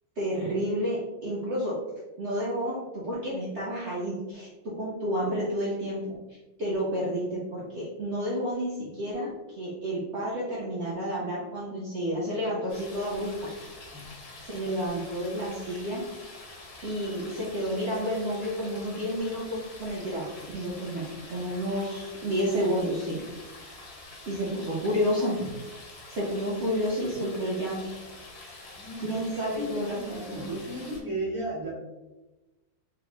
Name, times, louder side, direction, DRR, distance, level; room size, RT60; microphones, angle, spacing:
voice 1, 0.2-1.8 2.2-2.8 3.1-4.5 4.8-6.2 6.6-13.5 14.4-16.0 16.8-23.2 24.3-25.5 26.1-27.8 29.0-30.6, equal, 80° right, -7 dB, 0.6 m, -30 dB
sound 1, 12.7-31.0, left 2 dB, 75° left, 1.9 m, -46 dB
voice 2, 28.8-31.7, right 1 dB, 10° left, -9 dB, 1.1 m, -35 dB
3.6 x 3.3 x 2.9 m, 1.1 s
omnidirectional pair, 2.3 m